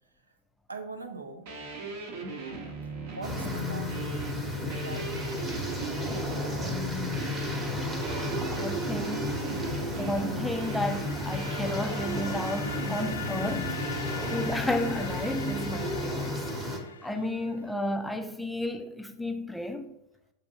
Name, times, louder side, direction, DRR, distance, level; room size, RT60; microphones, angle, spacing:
voice 1, 0.7-1.5 2.8-6.5 10.1-10.2, right 3 dB, 80° right, 0.5 m, -44 dB
sound 1, 1.5-14.5, right 2 dB, 50° right, 0.8 m, -38 dB
sound 2, 3.2-16.8, left 1 dB, 15° right, 0.9 m, -33 dB
voice 2, 8.5-9.4 9.9-13.8 14.3-16.4 17.0-19.9, left 1 dB, 5° left, 0.4 m, -32 dB
sound 3, 9.9-17.6, left 6 dB, 70° left, 0.4 m, -41 dB
7.3 x 2.6 x 2.8 m
figure-of-eight pair, 90°, 0 cm